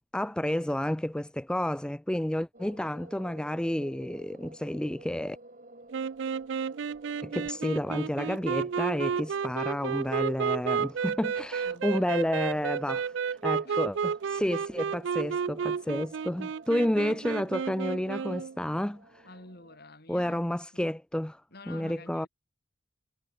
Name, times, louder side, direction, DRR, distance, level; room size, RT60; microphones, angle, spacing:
voice 1, 0.1-5.4 7.2-19.3 20.1-21.4 21.7-22.3, left 1 dB, 5° left, 0.4 m, -30 dB
sound 1, 2.5-19.8, right 2 dB, 40° right, 6.2 m, -53 dB
sound 2, 5.9-18.5, right 6 dB, 65° right, 0.4 m, -32 dB
voice 2, 11.6-12.2 13.6-13.8 19.2-20.9 21.5-22.3, left 2 dB, 55° left, 7.9 m, -49 dB
head